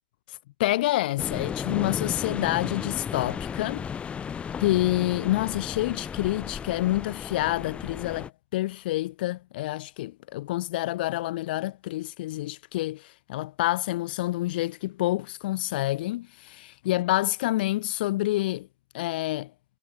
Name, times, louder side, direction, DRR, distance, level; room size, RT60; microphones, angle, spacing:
voice 1, 0.3-3.8 4.6-18.7 18.9-19.5, left 16 dB, 65° left, 3.2 m, -28 dB
sound 1, 1.2-8.3, left 7 dB, 20° left, 7.2 m, -34 dB
hypercardioid pair, 125°, 6 cm